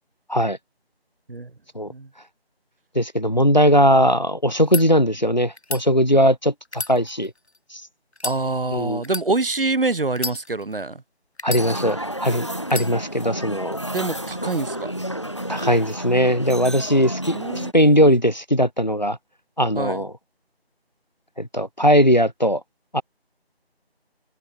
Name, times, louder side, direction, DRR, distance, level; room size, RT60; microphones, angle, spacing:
voice 1, 2.9-7.3 7.7-7.8 8.7-9.0 11.4-13.8 15.5-19.2 19.6-20.1 21.4-22.6 22.9-23.0, equal, 45° left, 0.6 m, -19 dB
sound 1, 4.5-4.8 5.6-5.8 6.7-7.6 8.1-8.4 9.0-9.3 10.1-10.8 11.4-12.1 12.7-12.9, left 2 dB, 90° left, 1.9 m, -31 dB
voice 2, 8.2-11.0 13.9-14.9 17.3-18.0 19.7-20.0, right 3 dB, 60° right, 0.7 m, -25 dB
sound 2, 11.6-17.7, equal, 25° left, 1.6 m, -31 dB
figure-of-eight pair, 180°, 32 cm